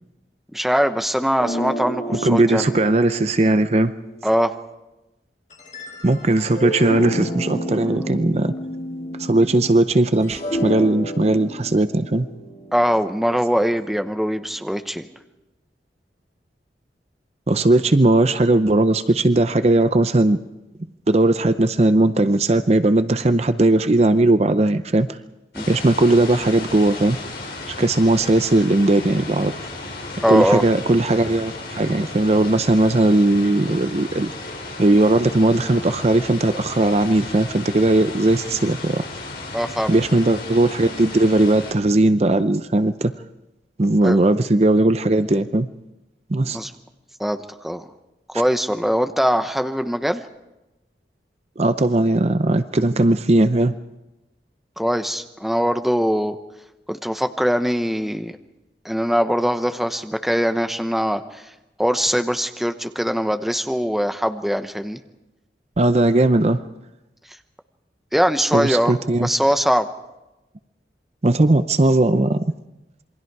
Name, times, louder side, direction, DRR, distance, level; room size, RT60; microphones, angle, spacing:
voice 1, 0.5-2.7 4.2-4.6 12.7-15.1 25.5-25.7 30.2-30.6 39.5-39.9 44.0-44.2 46.4-46.7 47.2-47.8 48.3-50.2 54.8-56.4 56.9-58.4 58.8-61.5 61.8-65.0 68.1-69.9, equal, ahead, 8 dB, 0.8 m, -22 dB
sound 1, 1.4-4.5 5.5-9.8 10.1-14.3, equal, 45° left, 4.9 m, -31 dB
voice 2, 2.2-3.9 6.0-8.5 9.2-12.3 17.5-20.4 21.1-25.1 25.7-27.2 27.8-29.5 30.3-34.3 34.8-39.1 39.9-43.1 43.8-45.7 46.3-46.6 51.6-53.7 65.8-66.6 68.5-69.3 71.2-72.4, right 2 dB, 35° right, 11 dB, 0.6 m, -18 dB
sound 2, 25.5-41.7, left 2 dB, 60° left, 5.9 m, -34 dB
27.5 x 23.0 x 4.7 m, 0.98 s
head